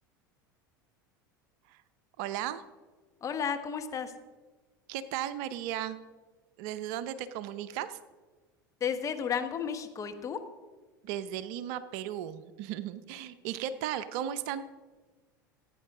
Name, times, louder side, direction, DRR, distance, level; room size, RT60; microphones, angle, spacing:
voice 1, 2.2-2.6 4.9-6.0 6.6-8.0 11.0-14.7, right 11 dB, 55° right, 14 dB, 0.6 m, -36 dB
voice 2, 3.2-4.1 8.8-10.4, left 7 dB, 30° left, 7 dB, 1.2 m, -33 dB
16.5 x 9.2 x 3.7 m, 1.3 s
figure-of-eight pair, 80°, 11 cm